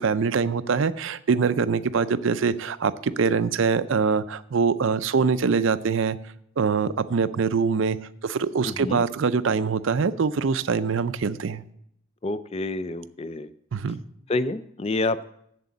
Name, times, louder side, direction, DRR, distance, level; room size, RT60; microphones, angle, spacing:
voice 1, 0.0-6.2 6.6-8.0 8.2-11.6 13.7-14.0, right 5 dB, 65° right, 14 dB, 0.4 m, -24 dB
voice 2, 8.6-9.0 12.2-13.5 14.3-15.3, left 2 dB, 30° left, 14 dB, 0.4 m, -28 dB
7.8 x 7.5 x 7.1 m, 0.73 s
head